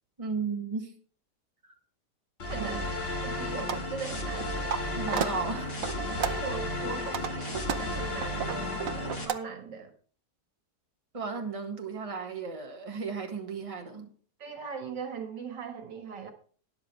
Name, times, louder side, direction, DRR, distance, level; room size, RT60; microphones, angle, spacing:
voice 1, 0.2-0.9 2.6-2.8 5.0-5.8 11.1-14.1, right 5 dB, 20° right, 1.8 m, -35 dB
sound 1, 2.4-9.2, left 1 dB, 35° left, 2.2 m, -33 dB
voice 2, 2.5-2.9 3.2-4.6 6.2-9.9 14.4-16.3, right 6 dB, 85° right, 2.4 m, -40 dB
sound 2, 3.6-3.8 4.3-4.8 5.1-5.3 5.8-6.5 6.9-9.3, right 8 dB, 60° right, 1.1 m, -32 dB
13.0 x 10.5 x 3.3 m
omnidirectional pair, 1.9 m